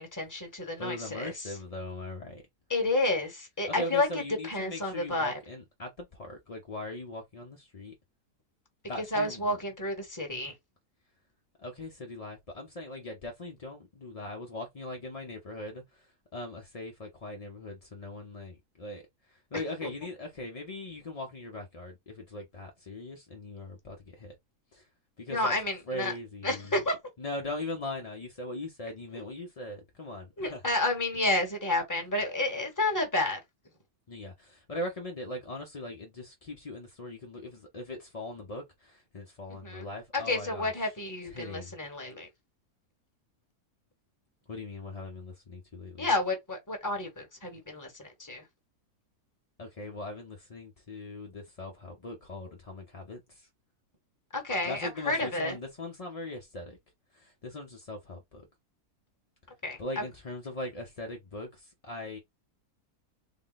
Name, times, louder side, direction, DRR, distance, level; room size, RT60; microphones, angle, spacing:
voice 1, 0.0-1.3 2.7-4.1 4.5-5.4 9.1-10.5 19.8-19.9 25.3-26.1 26.4-27.0 30.4-33.4 39.6-39.9 40.1-42.3 46.0-48.4 54.3-55.5 59.6-59.8, left 2 dB, 15° left, 1.0 m, -30 dB
voice 2, 0.8-2.4 3.7-7.9 8.9-9.6 11.6-24.4 24.7-24.9 25.2-25.6 25.9-26.8 27.2-30.6 34.1-40.9 41.3-41.7 44.5-46.1 49.6-53.5 54.6-56.8 57.1-58.5 59.8-62.2, left 2 dB, 45° left, 0.4 m, -40 dB
3.9 x 2.1 x 3.9 m
omnidirectional pair, 1.7 m